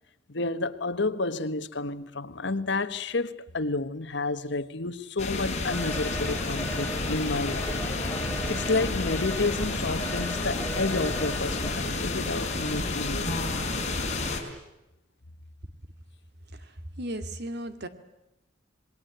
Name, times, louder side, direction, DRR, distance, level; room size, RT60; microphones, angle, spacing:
voice 1, 0.3-7.8 8.2-13.4, left 3 dB, 70° left, 1.4 m, -30 dB
sound 1, 5.2-14.4, left 2 dB, 40° left, 5.2 m, -30 dB
Telephone, 5.7-11.7, equal, 10° left, 3.2 m, -37 dB
voice 2, 16.5-17.9, right 1 dB, 60° right, 2.3 m, -36 dB
27.5 x 21.0 x 9.2 m
head